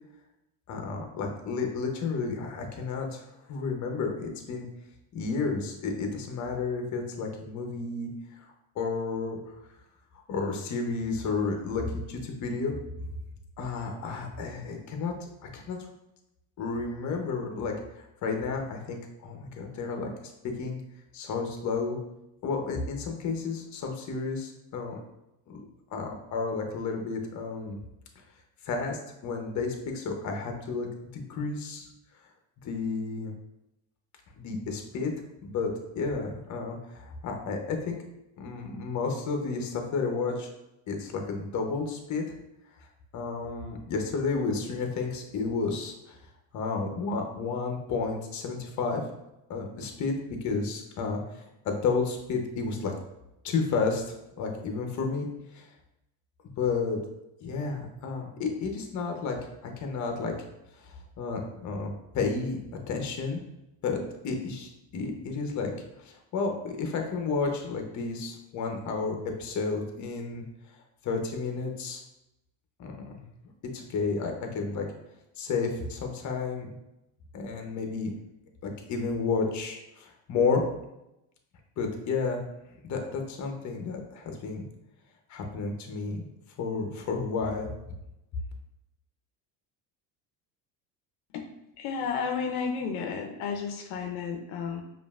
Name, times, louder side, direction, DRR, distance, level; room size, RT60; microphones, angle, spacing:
voice 1, 0.7-4.6 5.1-8.5 8.7-9.5 10.3-12.7 13.6-15.1 15.4-15.8 16.6-20.1 20.4-20.8 21.1-22.0 22.4-25.0 25.5-25.6 25.9-27.8 28.6-30.9 31.1-31.9 32.6-33.3 34.4-35.1 35.4-38.0 38.4-40.5 40.9-42.4 43.1-46.2 46.5-49.0 49.5-52.9 53.4-54.0 54.4-55.3 55.5-55.7 56.6-57.0 57.4-60.3 60.8-62.6 62.9-63.4 63.8-65.7 66.0-70.4 71.0-72.0 72.8-73.2 73.7-74.9 75.4-76.7 77.3-78.1 78.6-80.6 81.8-82.4 82.8-84.6 85.3-86.2 86.6-87.7, left 4 dB, 40° left, 3 dB, 0.8 m, -31 dB
voice 2, 91.8-94.8, left 6 dB, 75° left, 3 dB, 0.6 m, -32 dB
5.0 x 2.6 x 2.4 m, 0.89 s
supercardioid pair, 110°, 43 cm